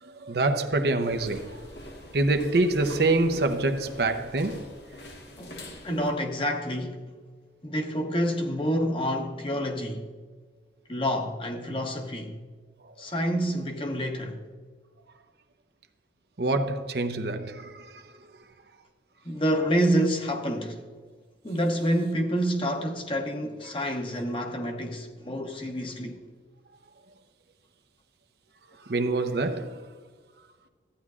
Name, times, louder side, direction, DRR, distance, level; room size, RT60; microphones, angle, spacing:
voice 1, 0.0-1.6 2.1-4.8 12.8-12.9 16.4-18.0 28.8-29.9, right 2 dB, 70° right, 0.7 m, -26 dB
sound 1, 1.0-6.1, left 1 dB, 85° left, 1.6 m, -44 dB
voice 2, 5.4-7.1 7.6-10.1 10.9-12.4 13.0-14.4 19.2-20.8 21.4-26.2, equal, 30° left, 0.9 m, -28 dB
14.0 x 9.5 x 2.4 m
head